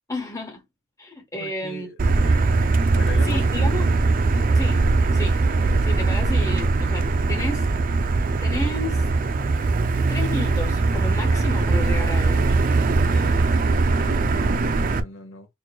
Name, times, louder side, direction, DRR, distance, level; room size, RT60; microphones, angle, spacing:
voice 1, 0.1-0.6 1.0-2.1 3.2-3.9 4.5-4.8 5.1-5.4 5.8-7.7 8.1-9.0 10.1-12.6, left 2 dB, 15° left, 1.1 m, -32 dB
voice 2, 1.3-3.7 13.0-15.5, left 1 dB, 80° left, 0.9 m, -40 dB
Motor vehicle (road), 2.0-15.0, right 3 dB, 45° right, 0.4 m, -20 dB
4.1 x 3.1 x 2.2 m
head